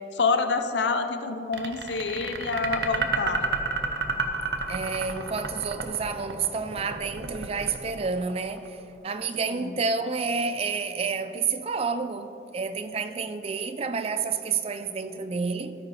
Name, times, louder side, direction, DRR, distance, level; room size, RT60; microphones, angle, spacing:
voice 1, 0.1-3.4 9.4-9.8, left 4 dB, 75° left, 0.6 m, -27 dB
sound 1, 1.5-8.7, right 4 dB, 65° right, 0.7 m, -30 dB
voice 2, 4.7-15.7, right 5 dB, 35° right, 0.4 m, -29 dB
13.0 x 4.9 x 4.8 m
head